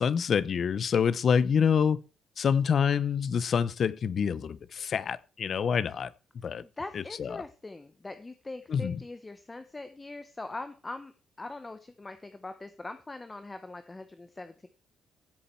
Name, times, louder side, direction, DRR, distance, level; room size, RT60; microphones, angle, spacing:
voice 1, 0.0-2.0 2.4-6.1 6.4-6.6 6.9-7.4 8.7-9.0, left 7 dB, 40° left, 0.7 m, -26 dB
voice 2, 6.6-11.1 11.4-14.7, left 2 dB, 15° left, 0.9 m, -42 dB
16.0 x 8.5 x 4.5 m
cardioid pair, 165°, 0 cm